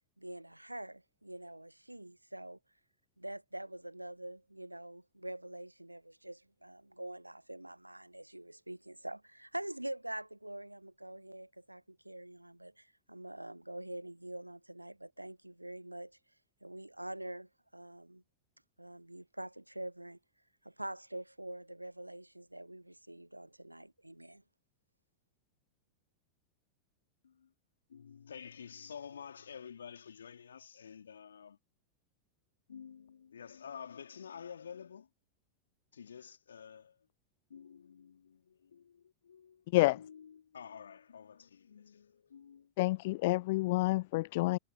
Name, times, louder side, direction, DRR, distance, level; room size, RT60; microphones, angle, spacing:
voice 1, 0.2-2.6 3.2-16.2 16.6-18.2 18.8-20.2 20.6-24.4, right 1 dB, 85° right, 1.1 m, -45 dB
voice 2, 27.9-31.6 32.7-35.1 35.9-37.0 37.5-39.6 39.9-42.7, left 7 dB, 70° left, 2.8 m, -50 dB
voice 3, 42.8-44.6, left 20 dB, 50° left, 0.4 m, -28 dB
figure-of-eight pair, 90°, 0 cm